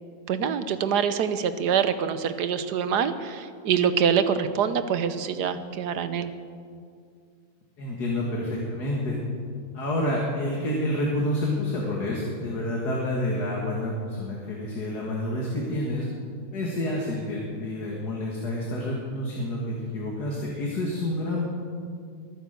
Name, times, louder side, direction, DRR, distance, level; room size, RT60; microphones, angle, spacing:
voice 1, 0.3-6.3, right 7 dB, 85° right, 11 dB, 1.5 m, -25 dB
voice 2, 7.8-9.2 9.7-16.1 16.5-21.5, left 1 dB, 75° left, -2 dB, 2.6 m, -28 dB
22.0 x 9.6 x 6.8 m, 2.2 s
omnidirectional pair, 1.7 m